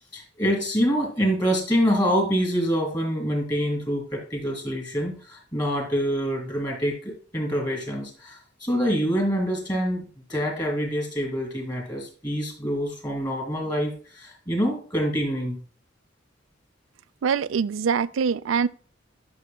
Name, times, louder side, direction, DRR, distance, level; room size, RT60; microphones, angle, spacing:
voice 1, 0.1-15.6, equal, 20° left, 2.7 m, -26 dB
voice 2, 17.2-18.7, right 6 dB, 80° right, 0.4 m, -24 dB
11.0 x 6.4 x 2.2 m
head